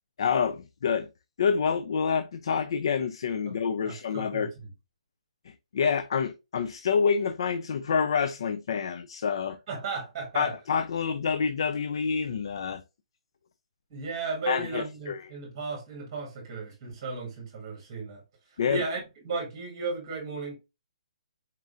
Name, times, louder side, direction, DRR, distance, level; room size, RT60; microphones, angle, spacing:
voice 1, 0.2-1.1 1.4-4.5 5.5-9.6 10.3-12.8 14.5-15.2 18.6-18.8, left 6 dB, 45° left, 0.3 m, -27 dB
voice 2, 3.8-4.7 9.7-10.5 13.9-18.2 18.5-20.6, right 4 dB, 15° right, 1.5 m, -35 dB
4.3 x 3.6 x 2.5 m
hypercardioid pair, 175°, 4 cm